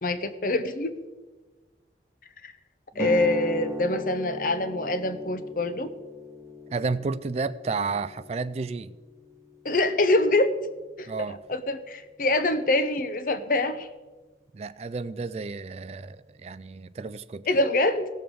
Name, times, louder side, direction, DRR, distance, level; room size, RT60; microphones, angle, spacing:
voice 1, 0.0-1.0 2.4-2.5 3.0-5.9 9.6-10.5 11.0-11.1 11.5-13.9 17.5-18.1, left 2 dB, 50° left, 11 dB, 0.8 m, -25 dB
sound 1, 2.9-11.0, left 1 dB, 15° right, 0.8 m, -39 dB
voice 2, 6.7-8.9 11.1-11.4 14.5-17.5, right 4 dB, 35° right, 15 dB, 0.3 m, -31 dB
17.0 x 7.0 x 4.7 m, 1.2 s
head